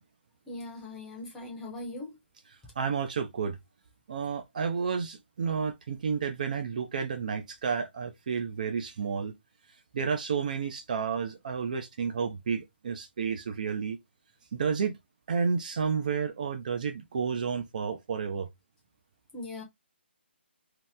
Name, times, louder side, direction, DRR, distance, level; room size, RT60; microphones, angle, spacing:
voice 1, 0.5-2.2 19.3-19.6, left 2 dB, 5° left, 0.7 m, -40 dB
voice 2, 2.8-3.6 4.1-9.3 9.9-14.0 14.5-15.0 15.3-18.5, right 6 dB, 45° right, 0.5 m, -31 dB
2.9 x 2.0 x 3.4 m
hypercardioid pair, 165°, 6 cm